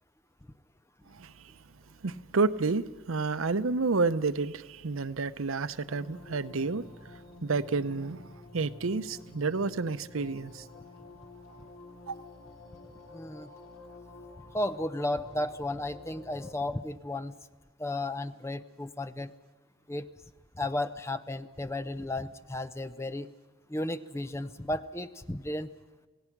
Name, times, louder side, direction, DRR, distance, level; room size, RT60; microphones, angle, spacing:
voice 1, 2.0-6.9 7.4-8.2 8.5-10.6 12.1-12.2, right 4 dB, 85° right, 0.7 m, -30 dB
sound 1, 5.9-16.6, left 2 dB, 75° left, 3.6 m, -50 dB
voice 2, 13.1-13.5 14.5-17.4 17.8-19.3 19.9-20.1 20.6-23.3 23.7-25.7, left 1 dB, 15° left, 0.6 m, -34 dB
26.5 x 17.5 x 6.0 m
head